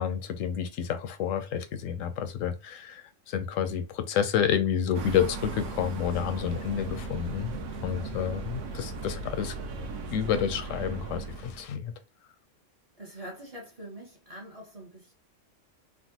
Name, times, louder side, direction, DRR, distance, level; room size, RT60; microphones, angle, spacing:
voice 1, 0.0-9.5 10.1-11.9, left 8 dB, 85° left, 0.9 m, -29 dB
sound 1, 4.9-11.7, right 3 dB, 75° right, 1.0 m, -37 dB
voice 2, 13.0-15.1, right 1 dB, 35° right, 0.7 m, -44 dB
3.4 x 2.1 x 2.7 m
omnidirectional pair, 1.3 m